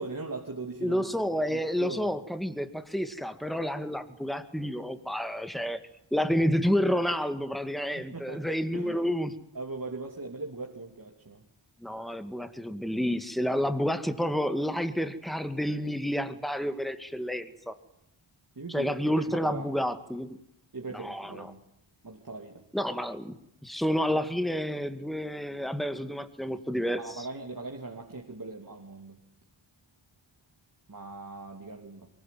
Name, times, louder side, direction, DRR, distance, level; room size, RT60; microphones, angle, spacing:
voice 1, 0.0-1.1 1.5-2.2 7.9-8.5 8.7-9.0 9.5-11.4 18.6-19.7 20.7-21.6 22.0-22.6 27.0-29.2 30.9-32.1, right 3 dB, 45° right, 1 dB, 2.9 m, -40 dB
voice 2, 0.8-5.8 6.1-9.3 11.8-17.7 18.7-20.4 20.9-21.5 22.7-23.3 23.6-27.3, equal, ahead, 9 dB, 2.2 m, -29 dB
23.5 x 21.5 x 9.4 m, 0.78 s
wide cardioid pair, 70°, 48 cm